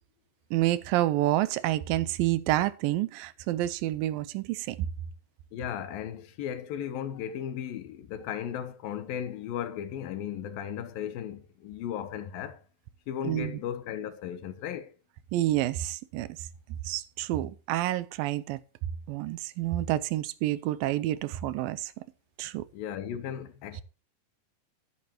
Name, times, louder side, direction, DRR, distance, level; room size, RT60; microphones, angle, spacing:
voice 1, 0.5-4.9 13.2-13.5 15.3-16.3 16.9-18.6 19.1-21.9 22.4-22.6, right 14 dB, 90° right, 2.5 m, -28 dB
voice 2, 5.5-12.6 13.1-15.0 22.7-23.8, left 9 dB, 85° left, 2.9 m, -36 dB
12.5 x 10.5 x 3.0 m
omnidirectional pair, 4.0 m